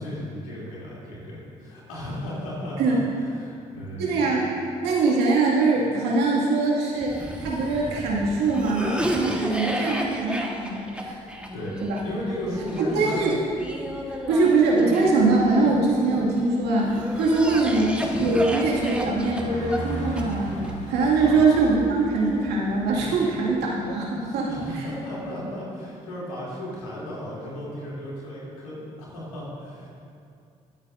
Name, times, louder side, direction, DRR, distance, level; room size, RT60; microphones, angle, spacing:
voice 1, 0.0-3.0 3.4-4.2 11.5-11.8 12.0-13.3 21.2-21.5 24.2-29.9, left 1 dB, 90° left, -7 dB, 2.9 m, -35 dB
voice 2, 4.0-4.4 4.8-11.1 11.8-12.0 12.8-13.3 14.1-24.8, right 3 dB, 75° right, -4 dB, 2.1 m, -22 dB
Cough, 7.0-16.2 16.8-20.7, equal, 5° right, 1.4 m, -32 dB
Bus, 8.1-25.0, right 1 dB, 40° left, 2.1 m, -41 dB
21.0 x 8.6 x 2.6 m, 2.4 s
hypercardioid pair, 50°, 18 cm